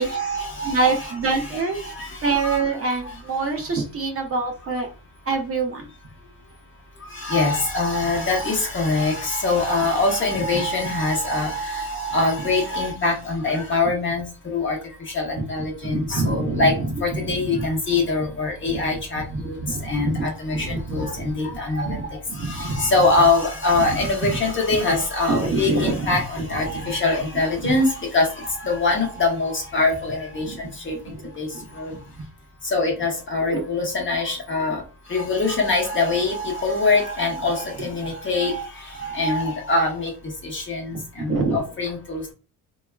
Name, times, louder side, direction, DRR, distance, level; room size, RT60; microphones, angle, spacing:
voice 1, 0.0-2.6 7.1-14.8 15.1-16.7 17.0-19.6 19.8-30.5 30.8-30.9 31.4-31.5 31.8-31.9 32.6-34.8 35.1-38.7 39.0-40.1 40.4-42.3, left 3 dB, 30° left, 1 dB, 0.8 m, -23 dB
voice 2, 0.7-1.8 2.2-4.9 5.3-5.9 15.8-16.6 17.5-17.6 18.7-18.8 19.6-20.3 20.5-21.3 21.9-22.0 22.4-22.9 24.2-24.3 25.3-26.1 27.6-27.7 30.5-30.6 33.5-33.6 41.3-41.6, right 3 dB, 40° right, 3 dB, 0.5 m, -25 dB
3.3 x 2.3 x 2.2 m, 0.33 s
cardioid pair, 135°, 38 cm